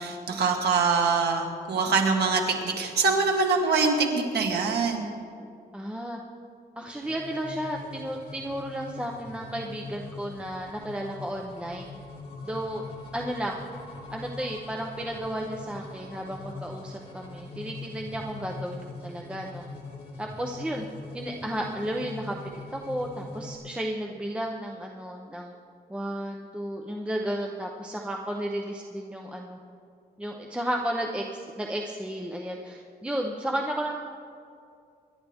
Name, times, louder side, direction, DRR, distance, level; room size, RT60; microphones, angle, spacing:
voice 1, 0.0-5.1, right 4 dB, 75° right, 2 dB, 1.8 m, -24 dB
voice 2, 5.7-6.2 6.8-11.9 12.4-12.8 13.1-13.6 14.1-19.6 20.2-20.9 21.1-22.3 22.7-25.5 25.9-29.6 30.2-34.0, right 1 dB, 5° right, 0 dB, 0.7 m, -33 dB
sound 1, 6.9-23.6, left 2 dB, 35° left, 2.8 m, -42 dB
25.5 x 12.0 x 3.5 m, 2.4 s
wide cardioid pair, 175°, 17 cm